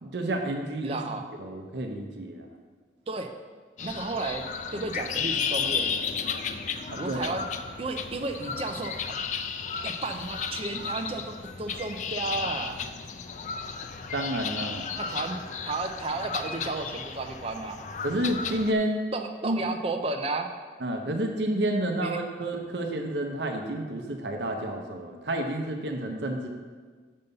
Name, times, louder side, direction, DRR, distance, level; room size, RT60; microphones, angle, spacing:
voice 1, 0.0-2.5 6.9-7.4 14.1-14.9 18.0-19.0 19.4-19.6 20.8-26.5, right 1 dB, 75° right, 3 dB, 0.7 m, -30 dB
voice 2, 0.8-1.2 3.1-3.3 3.8-4.5 4.7-5.9 7.0-7.4 7.8-9.1 9.8-12.8 15.0-15.4 15.6-17.8 19.1-20.5 22.0-22.2, right 3 dB, 30° right, 4 dB, 0.5 m, -33 dB
sound 1, 3.8-18.7, left 6 dB, 40° left, 0.4 m, -34 dB
6.8 x 5.4 x 5.4 m, 1.5 s
head